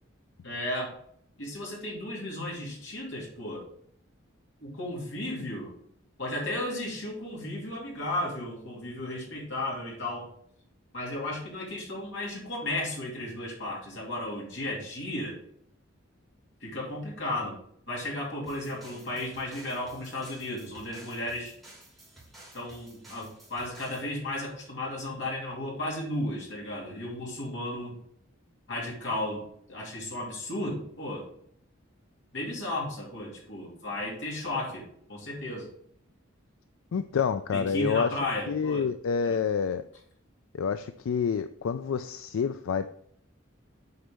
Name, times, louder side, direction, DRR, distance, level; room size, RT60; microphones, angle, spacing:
voice 1, 0.4-0.9 1.4-3.7 4.6-5.7 6.2-10.3 10.9-15.4 16.6-17.6 17.9-21.5 22.5-28.0 28.7-29.4 29.7-31.3 32.3-35.7 37.5-38.9 39.2-39.4, left 1 dB, 60° left, 2.7 m, -34 dB
sound 1, 18.5-24.1, right 1 dB, ahead, 3.0 m, -53 dB
voice 2, 36.9-38.1 38.5-39.8 40.5-42.9, left 6 dB, 80° left, 0.4 m, -28 dB
8.0 x 4.3 x 5.2 m
head